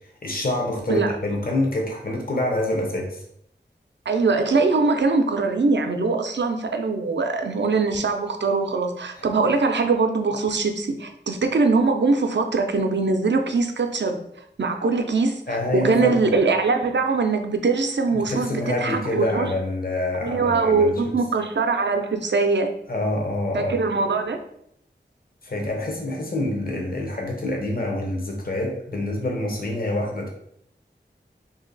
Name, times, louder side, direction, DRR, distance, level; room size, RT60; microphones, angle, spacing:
voice 1, 0.2-3.2 9.2-9.3 15.5-16.2 18.1-21.1 22.9-23.7 25.4-30.3, left 1 dB, 55° left, 0 dB, 0.8 m, -26 dB
voice 2, 4.1-14.2 14.6-15.4 15.7-19.5 20.2-22.7 23.5-24.4, right 4 dB, 75° right, 5 dB, 0.5 m, -22 dB
2.9 x 2.8 x 3.9 m, 0.72 s
wide cardioid pair, 55°, 19 cm